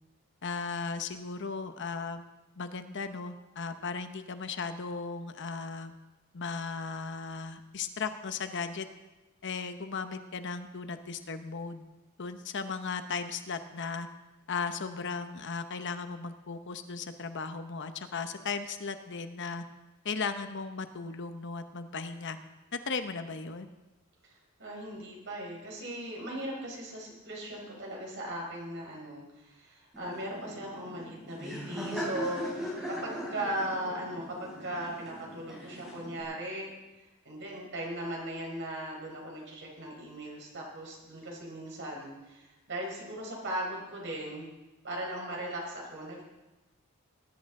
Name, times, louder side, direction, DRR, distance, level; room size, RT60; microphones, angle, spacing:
voice 1, 0.4-2.2 2.6-5.9 6.3-8.9 9.4-11.8 12.2-14.1 14.5-19.6 20.0-22.4 22.7-23.7, left 5 dB, 55° left, 9 dB, 0.9 m, -36 dB
voice 2, 24.2-36.7 37.2-44.5 44.8-46.2, right 1 dB, 60° right, -1 dB, 4.6 m, -38 dB
Laughter, 29.9-36.2, equal, ahead, 3.5 m, -40 dB
20.5 x 11.0 x 3.8 m, 1.1 s
head